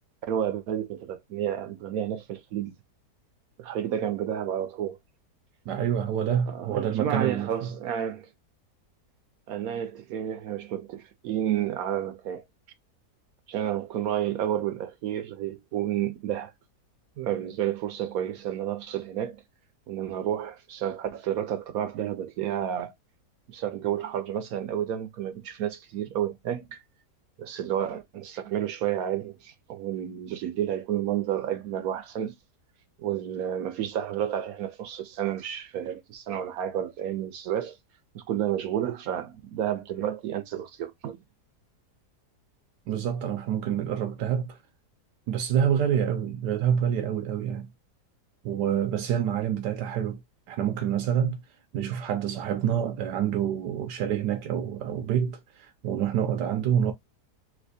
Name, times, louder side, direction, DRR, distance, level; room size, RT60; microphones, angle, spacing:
voice 1, 0.3-2.7 3.6-5.0 6.5-8.3 9.5-12.4 13.5-16.5 17.2-19.4 19.9-22.9 23.5-26.8 27.4-32.3 33.0-37.8 38.1-41.2, right 10 dB, 70° right, 0.9 m, -31 dB
voice 2, 5.7-7.7 42.9-44.6 45.3-47.7 48.4-50.2 50.5-51.4 51.7-56.9, right 9 dB, 85° right, 1.2 m, -27 dB
3.3 x 2.9 x 2.6 m
omnidirectional pair, 1.8 m